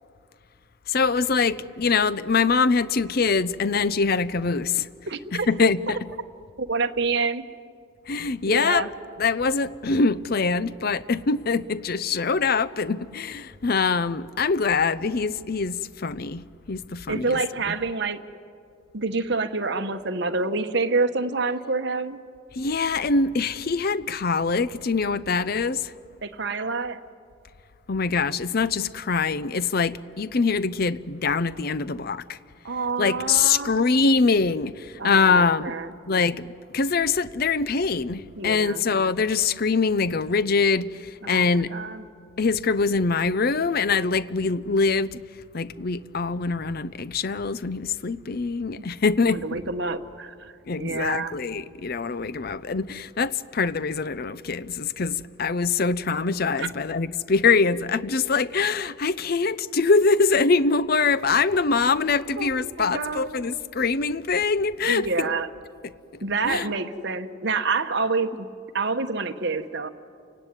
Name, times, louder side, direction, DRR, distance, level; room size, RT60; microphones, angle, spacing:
voice 1, 0.9-4.9 5.3-6.0 8.1-8.8 9.2-16.4 16.7-17.4 22.6-25.9 27.9-32.4 33.0-35.7 36.1-36.5 36.7-41.7 42.4-45.2 45.5-49.6 50.7-65.4 66.4-66.7, left 4 dB, 45° left, 0.5 m, -23 dB
voice 2, 5.1-5.5 6.6-7.4 8.5-8.9 17.1-18.2 18.9-22.2 26.2-27.0 32.6-33.8 35.0-35.9 38.4-38.8 41.2-42.1 48.8-48.9 49.3-51.4 56.6-56.7 62.4-63.5 64.9-65.5 66.2-68.5 68.7-69.9, right 4 dB, 55° right, 1.1 m, -27 dB
30.0 x 17.0 x 9.7 m
head